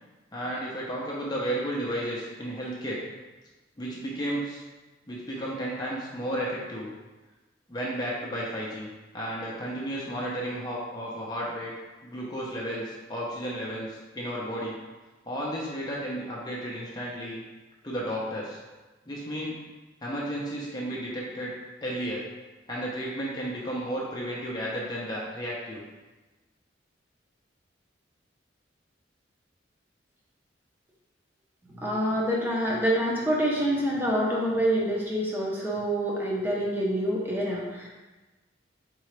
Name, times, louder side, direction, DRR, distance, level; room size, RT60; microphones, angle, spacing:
voice 1, 0.3-3.0 3.8-4.6 5.1-6.9 7.7-8.9 9.1-11.7 12.0-14.8 15.2-17.4 17.8-18.6 19.1-19.6 20.0-21.5 21.8-22.2 22.7-25.8, equal, 20° left, -5 dB, 0.7 m, -33 dB
voice 2, 31.7-37.9, equal, 10° right, -4 dB, 0.8 m, -26 dB
4.2 x 3.8 x 3.3 m, 1.2 s
head